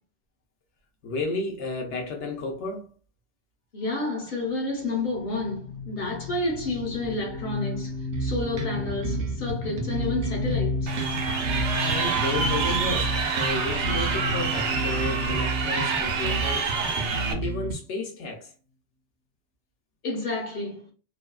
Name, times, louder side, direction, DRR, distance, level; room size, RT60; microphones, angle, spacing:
voice 1, 1.0-2.9 11.8-16.8 17.3-18.5, left 2 dB, 80° left, 1.0 m, -32 dB
voice 2, 3.7-11.0 20.0-20.9, left 2 dB, 55° left, 1.0 m, -30 dB
sound 1, 5.1-17.5, left 2 dB, 25° left, 0.6 m, -34 dB
sound 2, 8.1-17.7, right 3 dB, 55° right, 0.6 m, -31 dB
Crowd, 10.9-17.3, right 5 dB, 80° right, 0.9 m, -27 dB
2.7 x 2.3 x 2.2 m
omnidirectional pair, 1.2 m